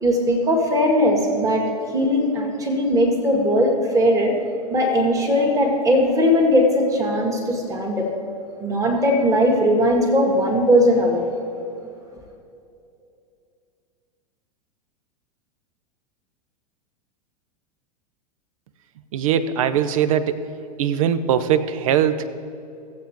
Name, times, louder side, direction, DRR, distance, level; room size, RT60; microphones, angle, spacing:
voice 1, 0.0-4.3 4.7-8.1 8.6-11.3, equal, 15° right, 1 dB, 1.8 m, -19 dB
voice 2, 19.1-20.4 20.8-22.3, right 9 dB, 55° right, 13 dB, 0.6 m, -21 dB
18.0 x 7.7 x 2.9 m, 2.6 s
figure-of-eight pair, 90°, 21 cm